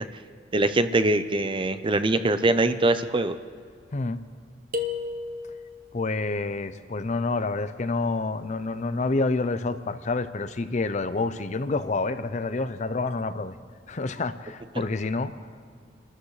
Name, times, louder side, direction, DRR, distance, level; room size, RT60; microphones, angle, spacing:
voice 1, 0.5-3.3, right 2 dB, 25° right, 10 dB, 0.6 m, -23 dB
voice 2, 3.9-4.2 5.9-13.5 13.9-15.3, left 3 dB, 40° left, 12 dB, 0.5 m, -28 dB
sound 1, 4.7-5.9, left 4 dB, 50° right, 1.2 m, -32 dB
28.0 x 13.5 x 3.2 m, 2.1 s
head